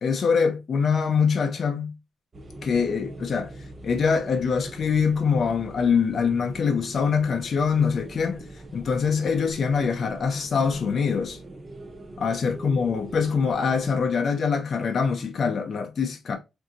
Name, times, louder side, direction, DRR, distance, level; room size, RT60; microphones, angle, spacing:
voice 1, 0.0-1.9 2.6-3.5 3.8-11.4 12.2-16.4, left 6 dB, 50° left, 0.5 m, -24 dB
sound 1, 2.3-14.0, right 2 dB, 30° right, 0.6 m, -42 dB
3.8 x 2.6 x 2.6 m
cardioid pair, 135°, 0 cm